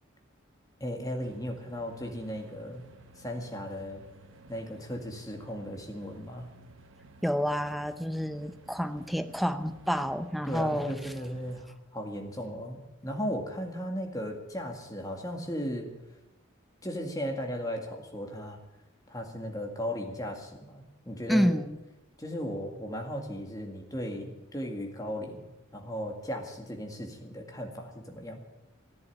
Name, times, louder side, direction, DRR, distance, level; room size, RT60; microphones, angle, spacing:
voice 1, 0.8-2.8 3.2-4.0 4.5-6.5 10.4-15.9 16.8-18.6 19.1-21.5 22.2-28.4, equal, 15° left, 2 dB, 2.0 m, -36 dB
sound 1, 1.2-11.7, right 2 dB, 70° right, 1.1 m, -55 dB
voice 2, 7.2-11.1 21.3-21.8, equal, ahead, 10 dB, 0.6 m, -29 dB
14.0 x 11.0 x 8.4 m, 1.0 s
head